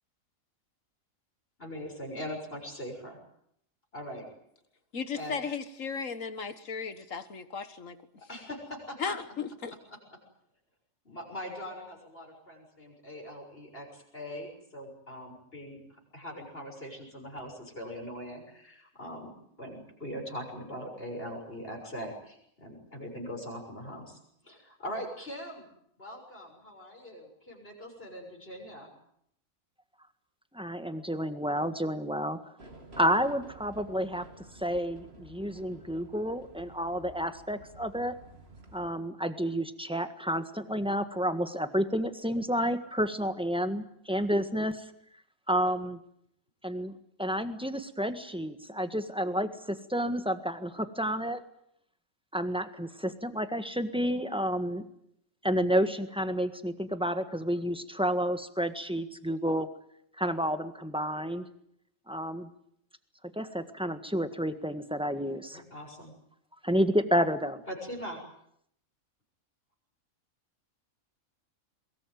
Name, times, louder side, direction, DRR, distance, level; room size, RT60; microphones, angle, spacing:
voice 1, 1.6-3.2 3.9-4.3 5.1-5.3 8.3-9.1 11.1-19.3 19.6-24.2 24.4-25.7 26.0-28.9 65.5-66.1 67.7-68.2, equal, 40° left, 2 dB, 7.0 m, -41 dB
voice 2, 4.9-8.0 9.0-9.7, left 5 dB, 65° left, 11 dB, 1.8 m, -35 dB
voice 3, 30.5-32.4 33.0-34.2 34.6-38.1 38.7-44.8 45.5-46.0 46.6-46.9 47.2-51.4 52.3-54.9 55.4-59.7 60.2-61.4 62.1-62.5 63.3-65.6 66.6-67.6, equal, 5° right, 9 dB, 1.5 m, -30 dB
sound 1, 32.6-38.9, right 2 dB, 45° right, 2.9 m, -52 dB
22.5 x 22.0 x 9.4 m, 0.74 s
omnidirectional pair, 1.5 m